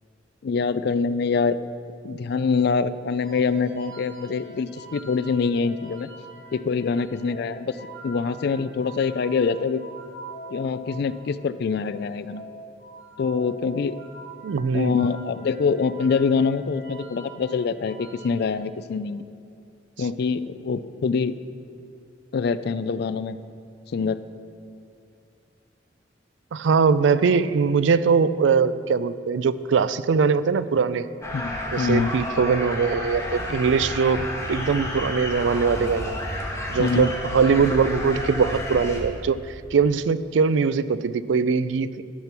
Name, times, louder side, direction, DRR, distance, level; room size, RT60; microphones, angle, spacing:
voice 1, 0.4-1.6 2.0-6.1 6.5-7.8 8.0-9.8 10.5-12.4 13.2-14.0 14.7-19.2 20.0-21.3 22.3-23.4 23.9-24.2 31.3-32.1 36.8-37.1, left 5 dB, 60° left, 14 dB, 0.4 m, -25 dB
sound 1, 3.2-18.5, right 2 dB, 70° right, 2.0 m, -44 dB
voice 2, 14.4-15.0 26.5-31.1 31.7-36.2 36.7-42.0, right 5 dB, 90° right, 15 dB, 0.4 m, -21 dB
sound 2, 31.2-39.0, left 1 dB, 15° left, 1.4 m, -31 dB
12.5 x 6.0 x 5.9 m, 2.4 s
head